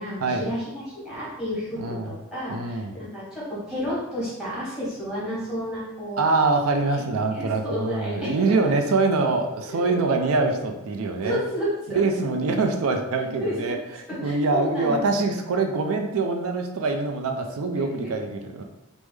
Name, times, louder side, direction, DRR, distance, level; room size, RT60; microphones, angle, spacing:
voice 1, 0.0-6.2 7.3-8.7 9.7-10.0 11.2-12.0 13.4-13.7 14.1-15.3 17.7-18.1, equal, 5° right, -9 dB, 1.2 m, -31 dB
voice 2, 1.8-2.1 2.5-3.0 6.2-11.4 11.9-18.6, right 3 dB, 70° right, 4 dB, 0.4 m, -24 dB
3.4 x 2.0 x 3.2 m, 0.94 s
head